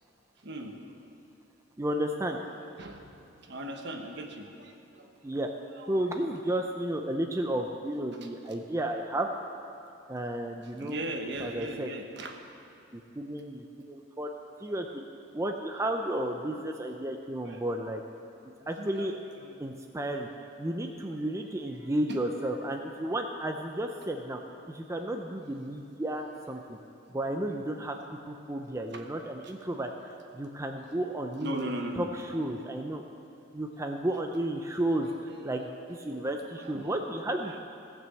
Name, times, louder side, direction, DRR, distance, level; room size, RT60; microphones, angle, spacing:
voice 1, 0.4-1.1 2.6-5.4 5.7-6.3 8.1-8.6 10.6-12.4 12.8-12.9 16.1-16.7 17.4-17.6 18.6-19.6 21.1-21.3 21.8-22.2 28.9-30.5 30.8-31.0 31.4-32.6 35.0-35.7 36.0-37.0 37.4-37.6, right 1 dB, 60° right, 3 dB, 1.2 m, -41 dB
voice 2, 1.8-2.4 5.2-5.5 5.9-9.3 10.1-11.0 11.4-11.9 12.9-14.3 14.6-14.9 15.3-18.0 18.7-19.2 19.6-20.3 20.6-24.4 24.7-26.8 27.1-28.0 28.3-31.7 32.0-32.1 32.3-33.0 33.5-35.1 35.4-37.6, right 1 dB, 15° right, 3 dB, 0.5 m, -32 dB
16.5 x 6.2 x 7.7 m, 2.6 s
head